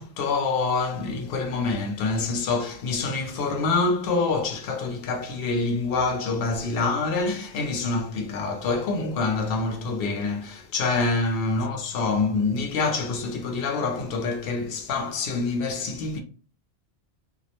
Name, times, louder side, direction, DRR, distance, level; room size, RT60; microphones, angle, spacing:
voice 1, 0.0-16.2, left 3 dB, 65° left, 0.7 m, -26 dB
2.4 x 2.0 x 2.8 m
omnidirectional pair, 1.1 m